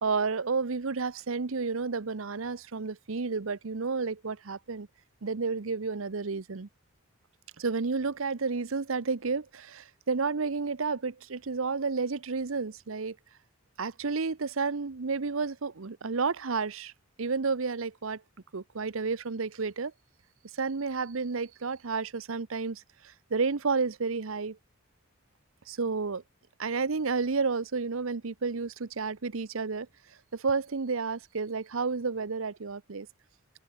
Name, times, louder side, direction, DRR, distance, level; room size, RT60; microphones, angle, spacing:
voice 1, 0.0-4.9 5.2-6.7 7.6-13.2 13.8-16.9 17.2-18.2 18.5-19.9 20.5-24.6 25.7-26.2 26.6-29.9 30.3-33.1, right 4 dB, 75° right, 0.8 m, -31 dB
head